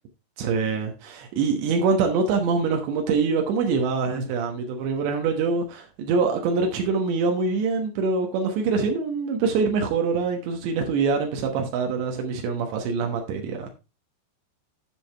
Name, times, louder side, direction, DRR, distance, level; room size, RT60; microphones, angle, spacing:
voice 1, 0.4-13.7, right 4 dB, 85° right, 3.5 m, -24 dB
10.5 x 7.7 x 3.4 m
omnidirectional pair, 4.9 m